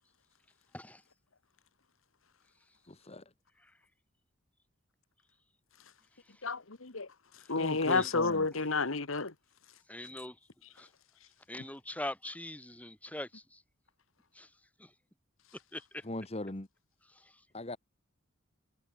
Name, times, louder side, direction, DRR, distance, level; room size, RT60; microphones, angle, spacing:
voice 1, 2.9-3.2 7.6-8.5 16.0-16.7 17.5-17.8, left 2 dB, 30° left, 1.4 m, -39 dB
voice 2, 6.4-7.1 7.5-9.3, left 3 dB, 75° left, 1.7 m, -30 dB
voice 3, 9.9-10.4 10.7-10.9 11.5-13.6 14.3-14.5 14.8-14.9 15.7-16.0 17.1-17.4, left 1 dB, 5° left, 2.7 m, -43 dB
head